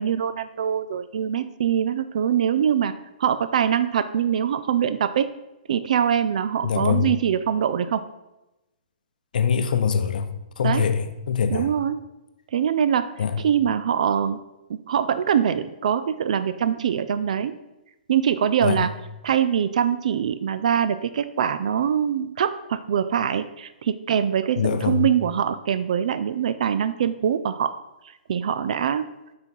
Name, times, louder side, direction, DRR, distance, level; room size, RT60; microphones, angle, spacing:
voice 1, 0.0-2.9 3.2-5.3 5.7-8.0 10.6-10.9 11.5-12.0 12.5-13.1 13.4-14.4 14.7-17.5 18.1-18.9 19.2-27.7 28.3-29.1, right 8 dB, 50° right, 12 dB, 0.4 m, -23 dB
voice 2, 6.6-7.1 9.3-10.3 10.6-11.7 13.2-13.3 18.6-18.8 24.6-25.0, left 7 dB, 65° left, 8 dB, 0.7 m, -23 dB
9.4 x 4.0 x 4.5 m, 0.98 s
hypercardioid pair, 170°, 5 cm